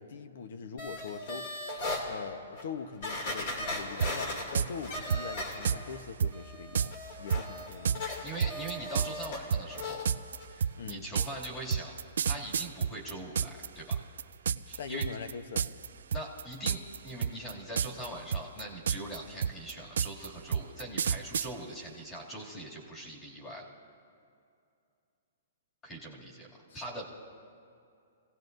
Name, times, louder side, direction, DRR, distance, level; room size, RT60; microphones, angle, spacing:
voice 1, 0.0-1.5 2.1-8.3 10.7-11.1 14.8-15.7 26.7-26.8, left 6 dB, 60° left, 10 dB, 1.0 m, -42 dB
sound 1, 0.8-2.0 2.6-2.7 3.0-6.0 6.3-9.4 9.7-10.0 10.4-10.5, left 1 dB, 45° left, 2.5 m, -38 dB
sound 2, 4.0-4.1 4.5-4.7 5.1-5.8 6.2-6.3 6.7-6.9 7.3-13.7 13.9-14.8 15.0-15.3 15.6-17.0 17.2-18.1 18.3-21.5, right 7 dB, 75° right, 0.4 m, -29 dB
voice 2, 8.2-10.0 10.5-12.0 12.2-14.0 14.7-15.0 16.1-23.7 25.8-27.0, right 1 dB, 15° left, -4 dB, 2.6 m, -42 dB
28.5 x 17.5 x 2.7 m, 2.5 s
hypercardioid pair, 170°, 0 cm